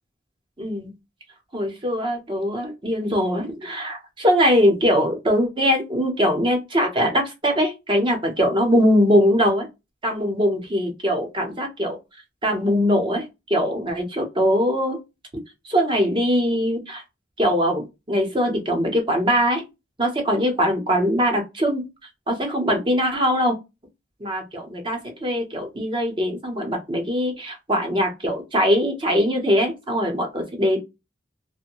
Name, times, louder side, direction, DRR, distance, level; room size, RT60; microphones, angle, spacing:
voice 1, 0.6-0.9 1.5-9.7 10.0-12.0 12.4-15.0 15.6-17.0 17.4-19.6 20.0-21.9 22.3-23.5 24.2-30.8, equal, 25° right, 0.8 m, -21 dB
2.6 x 2.2 x 2.9 m
head